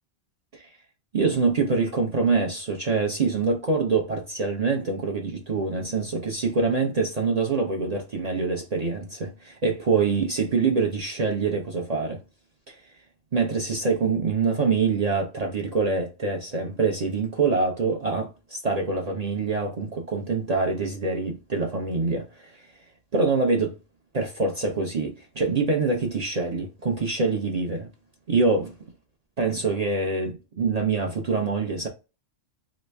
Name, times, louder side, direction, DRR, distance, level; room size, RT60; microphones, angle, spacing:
voice 1, 1.1-12.2 12.7-12.8 13.3-22.6 23.1-23.7 24.1-27.9 28.3-28.7 29.4-31.9, right 4 dB, 50° right, 0.5 m, -25 dB
3.0 x 2.5 x 3.3 m
omnidirectional pair, 1.3 m